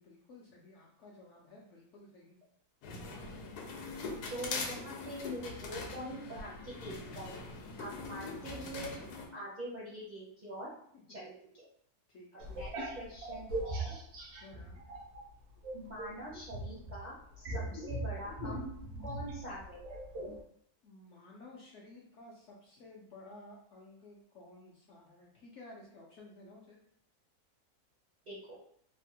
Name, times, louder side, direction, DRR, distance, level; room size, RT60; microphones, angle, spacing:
voice 1, 0.0-2.4 12.1-12.5 14.4-14.8 20.8-26.8, left 2 dB, 65° left, -3 dB, 0.7 m, -54 dB
sound 1, 2.8-9.3, left 3 dB, 85° left, 1.2 m, -42 dB
voice 2, 4.3-7.4 7.8-8.9 9.3-10.7 11.1-11.3 12.5-14.0 15.7-18.7 19.0-19.8 28.3-28.6, equal, 50° right, -7 dB, 0.5 m, -44 dB
sound 2, 12.4-15.3 15.6-20.4, right 1 dB, 85° right, 1.2 m, -40 dB
3.3 x 2.1 x 2.7 m, 0.65 s
omnidirectional pair, 1.6 m